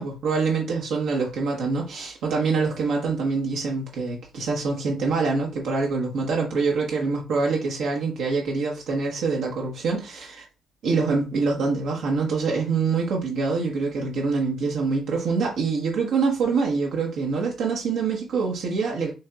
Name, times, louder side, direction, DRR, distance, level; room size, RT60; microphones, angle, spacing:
voice 1, 0.0-10.4 10.8-19.1, right 4 dB, 80° right, 1.1 m, -25 dB
6.0 x 3.0 x 2.4 m
cardioid pair, 90°, 0 cm